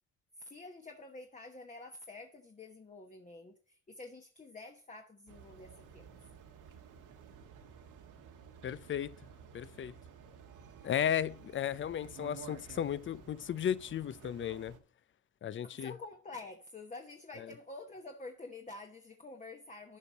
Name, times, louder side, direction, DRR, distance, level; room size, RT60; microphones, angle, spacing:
voice 1, 0.4-6.1 15.6-20.0, left 3 dB, 25° left, 1.1 m, -48 dB
sound 1, 5.3-14.8, right 7 dB, 85° right, 1.6 m, -53 dB
voice 2, 8.6-9.1 9.5-9.9 10.8-14.7 15.4-15.9, left 9 dB, 40° left, 0.5 m, -34 dB
12.0 x 5.4 x 4.1 m
cardioid pair, 90°, 30 cm